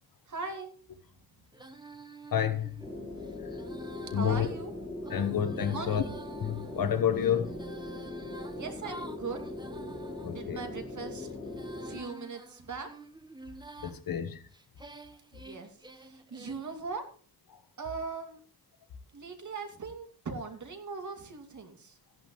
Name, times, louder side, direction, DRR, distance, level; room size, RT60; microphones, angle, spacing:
voice 1, 0.3-0.7 4.1-4.7 5.1-5.2 5.7-6.1 8.6-9.7 10.3-11.3 11.8-12.9 15.3-17.0 17.8-18.4 19.1-22.0, right 4 dB, 50° right, 2.5 m, -40 dB
Female singing, 1.5-10.4 11.0-14.0 14.5-16.8, right 2 dB, 10° right, 1.3 m, -49 dB
voice 2, 2.3-2.7 4.1-4.5 5.1-6.0 6.4-7.5 10.2-10.6 13.8-14.4, left 8 dB, 60° left, 1.2 m, -29 dB
sound 1, 2.8-12.0, left 2 dB, 5° left, 4.5 m, -40 dB
15.0 x 11.0 x 3.1 m
wide cardioid pair, 135°, 38 cm